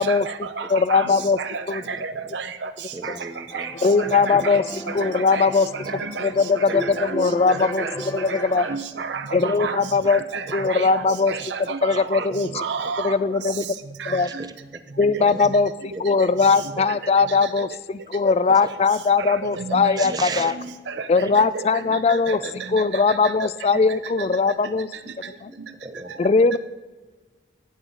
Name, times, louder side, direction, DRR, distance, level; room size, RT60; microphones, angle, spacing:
voice 1, 0.0-1.1 1.4-2.7 3.0-3.1 3.5-3.7 4.0-4.6 4.9-5.0 5.3-5.5 5.9-6.3 6.7-7.2 7.5-7.9 8.3-9.8 10.1-12.2 12.6-13.1 14.0-14.2 17.2-17.3 19.3-20.1 20.9-21.0 21.5-21.6 22.1-22.3, right 5 dB, 80° right, 9 dB, 0.6 m, -31 dB
voice 2, 0.7-1.4 1.7-1.8 3.8-4.6 4.9-5.7 6.2-7.9 8.1-8.7 9.3-10.2 10.5-11.3 11.8-12.6 13.0-13.6 14.1-14.3 15.0-20.5 21.1-22.4 22.7-24.9 25.4-25.5 26.2-26.6, left 4 dB, 35° left, 16 dB, 0.4 m, -20 dB
voice 3, 1.8-2.3 2.9-3.7 4.3-4.6 5.0-5.1 6.7-7.0 8.9-9.0 9.4-9.9 10.5-10.6 11.1-11.3 12.2-12.6 13.6-13.7 14.2-14.8 15.2-15.5 16.1-16.2 18.5-18.7 19.9-20.6 21.1-21.3 22.3-22.6 25.8-26.3, right 3 dB, 20° right, 9 dB, 0.6 m, -37 dB
sound 1, 3.5-8.8, equal, 15° left, 0.8 m, -36 dB
15.0 x 9.3 x 3.9 m, 1.3 s
head